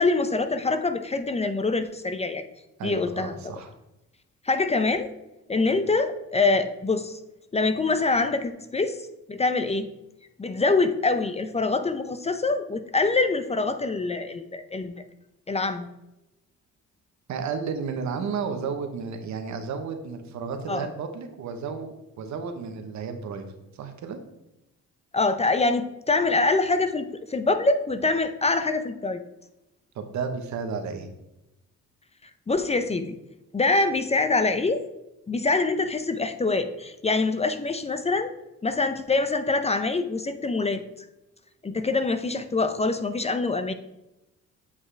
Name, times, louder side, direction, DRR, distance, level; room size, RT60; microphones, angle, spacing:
voice 1, 0.0-2.4 2.8-3.4 4.4-5.1 5.5-7.2 7.5-9.0 9.3-9.9 10.4-15.0 15.5-15.9 20.7-20.9 25.1-29.2 32.5-33.1 33.5-34.8 35.3-38.3 38.6-40.8 41.6-43.7, left 3 dB, 20° left, 10 dB, 0.5 m, -24 dB
voice 2, 2.8-3.7 17.3-24.2 29.9-31.1, right 5 dB, 70° right, 6 dB, 1.1 m, -33 dB
8.3 x 5.5 x 3.3 m, 0.94 s
cardioid pair, 90°, 30 cm